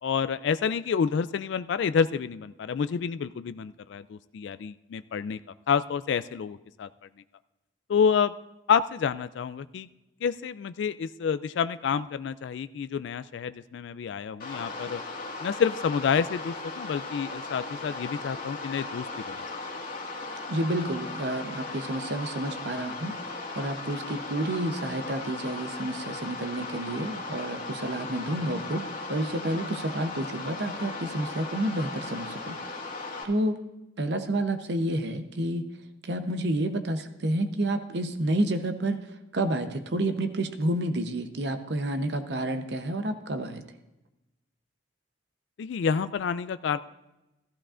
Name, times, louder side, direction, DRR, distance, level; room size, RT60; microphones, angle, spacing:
voice 1, 0.0-5.4 5.7-6.9 7.9-8.3 8.7-9.9 10.2-15.0 15.4-19.4 45.6-46.8, left 6 dB, 70° left, 13 dB, 0.3 m, -28 dB
sound 1, 14.4-33.2, left 3 dB, 45° left, 1.8 m, -37 dB
voice 2, 20.5-23.1 23.6-32.6 33.2-33.6 34.0-35.7 36.1-39.0 39.3-43.6, right 1 dB, 60° right, 8 dB, 0.8 m, -29 dB
14.5 x 14.0 x 2.5 m, 0.97 s
head